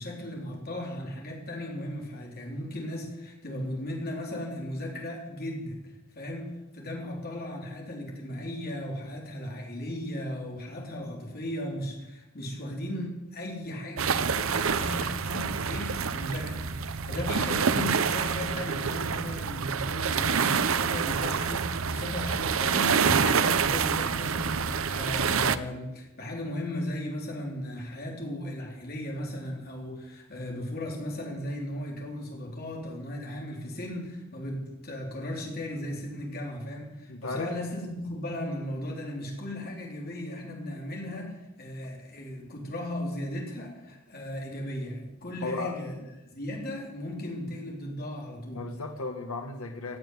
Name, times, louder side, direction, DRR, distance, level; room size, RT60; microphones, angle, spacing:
voice 1, 0.0-45.9 46.3-48.7, left 1 dB, 45° left, -1 dB, 3.8 m, -36 dB
sound 1, 14.0-25.6, right 6 dB, 65° right, 0.7 m, -27 dB
voice 2, 37.1-37.5 45.4-45.8 48.5-50.0, left 3 dB, 85° left, 5 dB, 1.4 m, -35 dB
16.0 x 7.0 x 9.5 m, 1.0 s
head